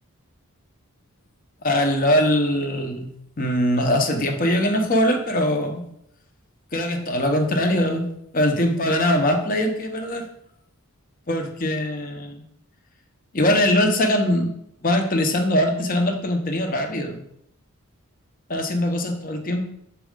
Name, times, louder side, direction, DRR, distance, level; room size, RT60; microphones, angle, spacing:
voice 1, 1.6-5.8 6.7-10.3 11.3-12.4 13.3-14.5 14.8-17.2 18.5-19.7, left 1 dB, 40° left, 4 dB, 0.8 m, -22 dB
7.2 x 4.5 x 3.7 m, 0.75 s
head